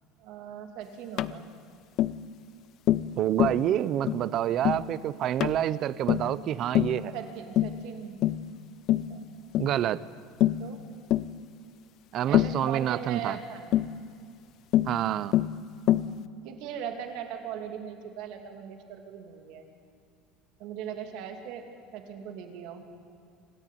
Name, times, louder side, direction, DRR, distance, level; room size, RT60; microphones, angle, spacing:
voice 1, 0.2-1.5 7.1-8.2 9.1-9.3 10.6-10.8 12.3-13.9 15.9-19.6 20.6-21.7 21.9-22.8, right 8 dB, 55° right, 5 dB, 2.7 m, -39 dB
Tap, 1.2-1.4 2.0-2.2 2.9-3.1 3.4-3.6 4.1-4.3 4.6-4.9 5.4-5.6 6.1-6.3 6.7-7.0 7.6-7.8 8.2-8.5 8.9-9.1 9.5-9.7 10.4-10.7 11.1-11.3 12.3-12.6 13.7-13.9 14.7-15.0 15.3-15.6 15.9-16.1, left 13 dB, 40° left, 0.5 m, -24 dB
voice 2, 3.2-7.1 9.6-10.0 12.1-13.4 14.9-15.3, right 11 dB, 35° right, 17 dB, 0.6 m, -28 dB
27.0 x 14.0 x 9.3 m, 2.4 s
cardioid pair, 170°, 0 cm